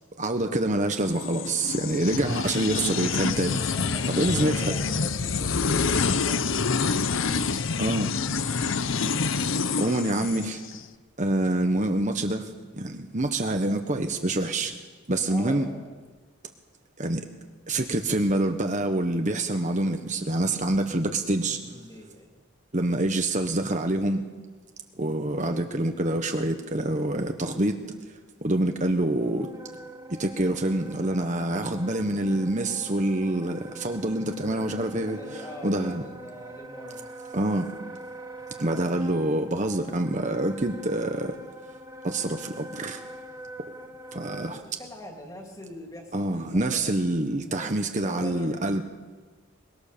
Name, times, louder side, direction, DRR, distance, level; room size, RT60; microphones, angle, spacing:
voice 1, 0.2-3.6 4.1-4.7 6.0-6.2 7.8-8.1 9.2-10.6 11.2-14.7 15.1-15.7 17.0-17.3 17.7-21.6 22.7-24.3 25.0-27.8 28.4-29.5 30.1-35.2 35.6-36.0 37.3-37.7 38.6-41.4 42.0-43.0 44.1-44.6 46.1-48.8, right 1 dB, 35° right, 6 dB, 1.2 m, -26 dB
sound 1, 1.1-10.8, left 5 dB, 65° left, 0.8 m, -27 dB
voice 2, 3.7-7.1 13.5-13.8 15.1-15.9 21.5-22.3 25.4-25.7 35.1-37.0 44.5-46.8 47.5-48.8, left 1 dB, 15° left, 2 dB, 3.0 m, -43 dB
Wind instrument woodwind instrument, 29.2-44.7, right 1 dB, 15° right, 1.6 m, -43 dB
23.5 x 21.5 x 6.9 m, 1.3 s
head